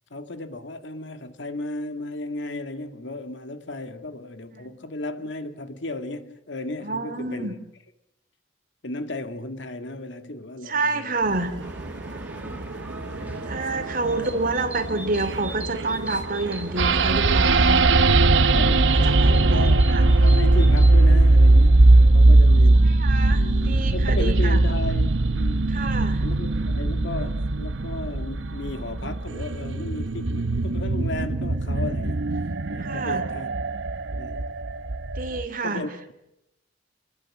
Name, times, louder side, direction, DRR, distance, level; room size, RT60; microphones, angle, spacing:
voice 1, 0.1-7.6 8.8-11.1 12.3-12.7 13.0-13.5 14.1-14.4 18.5-19.9 20.2-23.0 23.3-25.7 26.2-32.4 32.7-33.5 34.1-34.5 35.6-35.9, left 2 dB, 75° left, 2.1 m, -35 dB
voice 2, 6.8-7.5 10.7-11.5 13.4-17.9 18.3-18.8 19.1-20.0 22.8-24.6 25.7-26.3 32.8-33.3 35.1-35.9, right 3 dB, 50° right, 2.9 m, -28 dB
sound 1, 11.2-17.1, right 2 dB, 70° right, 1.2 m, -35 dB
sound 2, 11.6-21.1, right 2 dB, 10° right, 1.9 m, -40 dB
sound 3, 16.8-35.4, right 2 dB, 90° right, 1.0 m, -19 dB
28.5 x 21.0 x 7.4 m
head